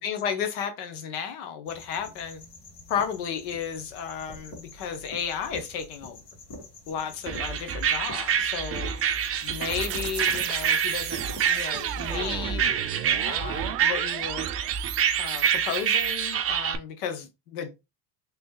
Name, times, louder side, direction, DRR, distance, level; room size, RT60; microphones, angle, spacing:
voice 1, 0.0-2.4 2.9-6.2 6.9-8.9 9.4-12.7 13.2-14.5 15.2-17.7, left 7 dB, 80° left, 1.0 m, -33 dB
sound 1, 1.6-12.3, left 2 dB, 60° left, 2.3 m, -46 dB
sound 2, 7.3-16.8, right 8 dB, 30° right, 0.5 m, -27 dB
sound 3, 8.8-16.3, right 13 dB, 85° right, 0.5 m, -36 dB
3.3 x 3.1 x 3.1 m
supercardioid pair, 100°, 47 cm